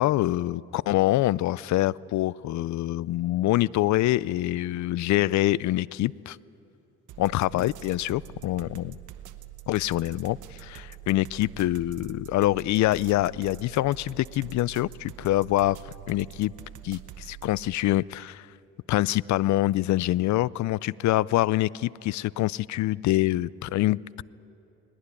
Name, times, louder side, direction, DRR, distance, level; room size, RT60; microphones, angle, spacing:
voice 1, 0.0-6.4 7.2-9.0 9.7-15.8 16.1-16.5 16.8-18.5 18.9-24.2, left 16 dB, 70° left, 23 dB, 0.4 m, -25 dB
sound 1, 7.1-17.8, right 12 dB, 75° right, 1.0 m, -45 dB
20.0 x 18.5 x 9.7 m, 2.8 s
cardioid pair, 90°, 30 cm